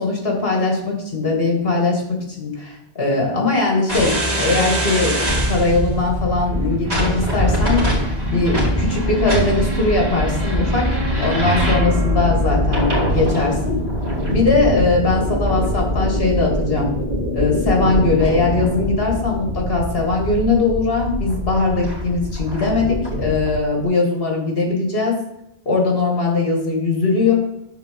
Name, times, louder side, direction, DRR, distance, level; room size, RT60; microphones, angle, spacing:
voice 1, 0.0-5.2 5.5-7.9 8.3-10.9 11.2-13.8 14.3-16.9 17.3-25.2 25.7-27.3, left 3 dB, 65° left, 0 dB, 2.1 m, -20 dB
sound 1, 3.9-23.6, equal, 40° right, 2.2 m, -22 dB
8.2 x 3.7 x 6.7 m, 0.84 s
omnidirectional pair, 1.1 m